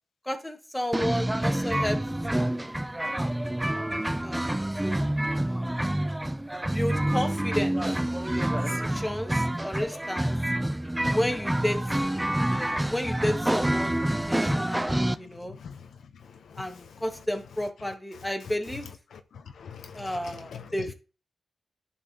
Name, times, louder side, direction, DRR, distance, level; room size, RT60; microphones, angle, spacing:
voice 1, 0.2-2.0 2.3-2.6 4.2-5.7 6.7-7.8 8.2-10.4 11.1-11.8 12.5-15.6 16.6-18.9 19.9-20.9, left 1 dB, 5° left, 1.6 m, -32 dB
sound 1, 0.9-15.1, right 1 dB, 10° right, 0.4 m, -27 dB
voice 2, 14.5-15.2 15.5-15.9 16.5-16.9 19.1-20.7, left 6 dB, 80° left, 0.8 m, -44 dB
11.0 x 5.7 x 2.9 m
cardioid pair, 70°, 0 cm